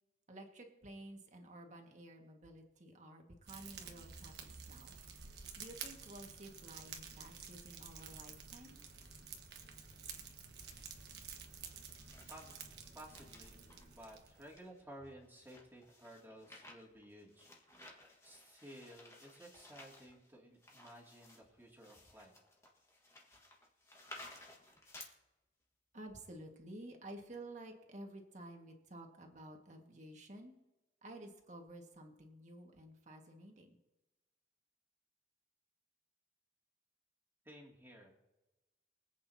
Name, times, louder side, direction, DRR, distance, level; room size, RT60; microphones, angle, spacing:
voice 1, 0.3-5.0 5.6-8.8 25.9-30.5 31.0-33.8, right 1 dB, 40° right, 2 dB, 1.8 m, -52 dB
Fire, 3.5-14.6, right 6 dB, 65° right, 1.4 m, -51 dB
sound 1, 10.7-11.3 11.8-12.7 13.0-25.1, left 2 dB, 15° left, 1.7 m, -57 dB
voice 2, 12.9-22.3 37.4-38.1, right 1 dB, 10° right, -3 dB, 2.6 m, -55 dB
24.0 x 8.5 x 2.9 m, 1.0 s
head